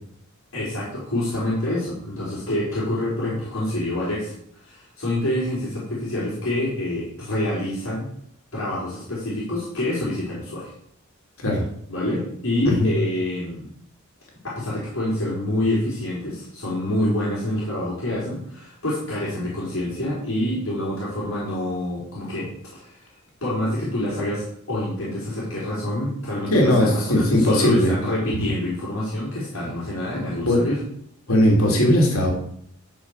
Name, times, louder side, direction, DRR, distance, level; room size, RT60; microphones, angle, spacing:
voice 1, 0.5-4.3 4.6-8.1 8.5-10.7 11.9-13.7 14.4-30.8, left 1 dB, 70° left, -7 dB, 4.4 m, -27 dB
voice 2, 26.5-27.9 28.3-28.6 30.4-30.6 31.3-32.3, left 1 dB, 85° left, -1 dB, 3.0 m, -18 dB
12.5 x 5.2 x 6.6 m, 0.68 s
head